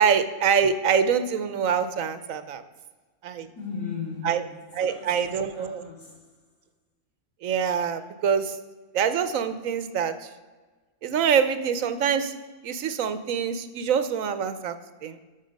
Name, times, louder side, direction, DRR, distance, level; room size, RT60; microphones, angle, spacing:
voice 1, 0.0-2.6 3.2-3.5 4.2-4.4 4.7-5.9 7.4-8.6 8.9-10.3 11.0-12.3 12.6-14.7 15.0-15.2, right 7 dB, 70° right, 1.1 m, -25 dB
voice 2, 3.6-6.3, left 5 dB, 85° left, 2.9 m, -37 dB
13.0 x 6.1 x 5.2 m
omnidirectional pair, 1.5 m